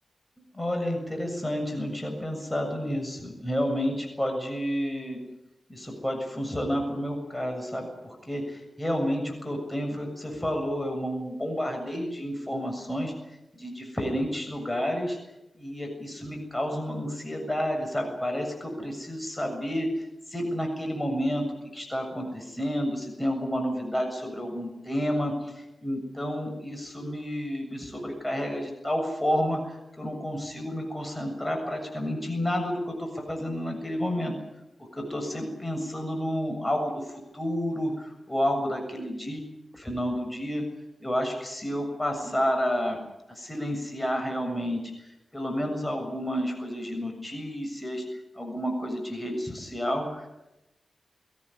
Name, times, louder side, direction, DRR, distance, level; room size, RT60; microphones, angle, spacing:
voice 1, 0.5-5.2 5.7-13.1 13.5-15.2 15.6-21.5 21.7-34.3 34.9-39.4 39.7-40.6 41.0-43.0 43.3-50.3, equal, 15° left, 3 dB, 7.3 m, -30 dB
21.5 x 18.5 x 10.0 m, 0.93 s
cardioid pair, 60°, 0 cm